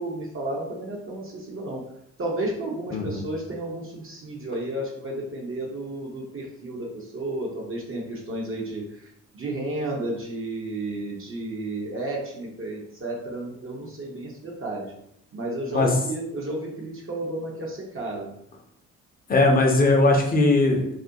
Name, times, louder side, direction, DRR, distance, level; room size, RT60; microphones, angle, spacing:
voice 1, 0.0-1.8 2.2-14.9 15.3-18.3, right 1 dB, 30° right, -2 dB, 0.7 m, -32 dB
voice 2, 2.9-3.3 15.7-15.9 19.3-20.9, left 2 dB, 20° left, 1 dB, 0.7 m, -19 dB
2.5 x 2.1 x 2.7 m, 0.75 s
figure-of-eight pair, 40°, 42 cm